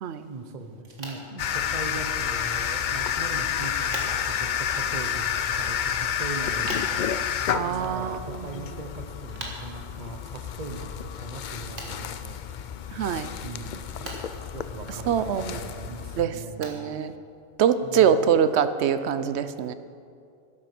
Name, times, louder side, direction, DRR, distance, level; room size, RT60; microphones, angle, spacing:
voice 1, 0.2-7.3 7.7-12.4 13.4-14.1 14.5-16.8 17.8-18.1, right 3 dB, 40° right, 5 dB, 1.0 m, -40 dB
sound 1, 0.8-18.0, right 2 dB, 85° right, 2.1 m, -46 dB
sound 2, 1.4-16.2, left 8 dB, 60° left, 0.5 m, -30 dB
voice 2, 7.5-8.7 12.9-13.3 15.1-15.6 16.2-17.1 17.6-19.7, right 8 dB, 70° right, 12 dB, 0.9 m, -24 dB
12.0 x 10.0 x 6.0 m, 2.4 s
omnidirectional pair, 1.2 m